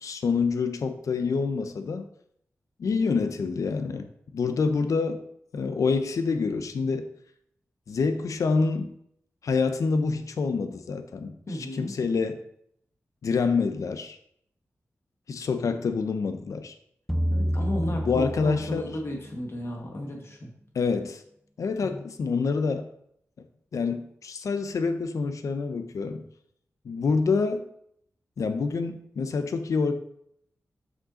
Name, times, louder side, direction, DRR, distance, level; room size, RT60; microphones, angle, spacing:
voice 1, 0.0-2.1 2.8-4.1 4.3-5.2 5.5-7.1 7.9-8.9 9.4-11.4 11.7-12.4 13.2-14.2 15.3-16.7 18.0-18.9 20.7-21.2 21.6-22.9 23.7-26.2 26.8-27.7 28.4-29.9, left 4 dB, 85° left, 9 dB, 0.7 m, -27 dB
voice 2, 11.5-12.0 17.3-20.5 21.8-22.0, left 1 dB, 50° left, 1 dB, 1.7 m, -33 dB
sound 1, 17.1-19.5, equal, ahead, 0.5 m, -29 dB
6.2 x 5.3 x 4.2 m, 0.71 s
wide cardioid pair, 85°, 5 cm